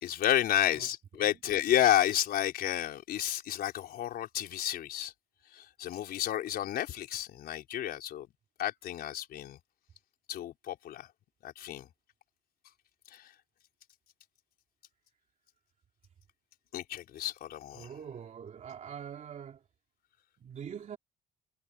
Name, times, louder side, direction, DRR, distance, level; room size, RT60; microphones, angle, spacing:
voice 1, 0.0-5.1 5.5-8.3 8.6-9.6 10.3-11.1 11.4-11.9 13.1-13.3 16.7-17.9, left 12 dB, 65° left, 4.5 m, -31 dB
voice 2, 17.7-19.6 20.4-21.0, right 8 dB, 45° right, 2.9 m, -43 dB
cardioid pair, 110°, 17 cm